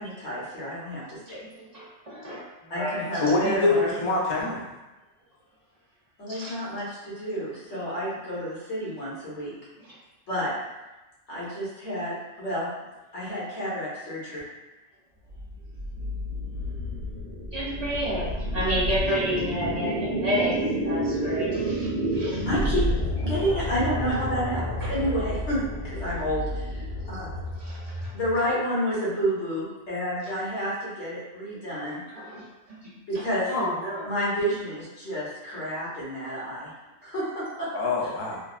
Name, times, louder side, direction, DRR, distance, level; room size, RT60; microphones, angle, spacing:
voice 1, 0.0-1.4 2.7-3.9 6.2-9.5 10.3-10.5 11.3-12.7 13.1-14.4 22.5-22.9 23.2-25.6 25.9-27.3 28.1-32.2 33.1-33.5 34.0-36.7 37.0-37.7 38.0-38.1, equal, 85° left, -8 dB, 1.4 m, -30 dB
voice 2, 1.3-3.1 6.3-6.5 17.5-20.5 20.8-22.5 24.8-24.9 27.6-27.9 32.1-32.8 33.1-34.1, equal, 50° right, -7 dB, 0.5 m, -31 dB
voice 3, 3.2-4.7 37.7-38.4, left 3 dB, 50° left, -3 dB, 0.4 m, -24 dB
sound 1, 15.3-28.5, equal, 15° left, 0.8 m, -30 dB
3.3 x 2.1 x 2.3 m, 1.0 s
omnidirectional pair, 1.2 m